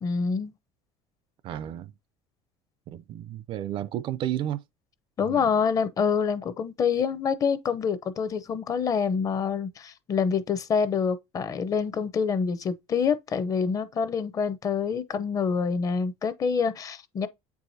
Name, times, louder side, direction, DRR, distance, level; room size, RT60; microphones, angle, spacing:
voice 1, 0.0-0.5 5.2-17.3, left 6 dB, 30° left, 0.7 m, -26 dB
voice 2, 1.4-1.9 2.9-4.6 5.2-5.5, right 12 dB, 45° right, 0.4 m, -32 dB
8.2 x 4.7 x 2.7 m
cardioid pair, 145°, 12 cm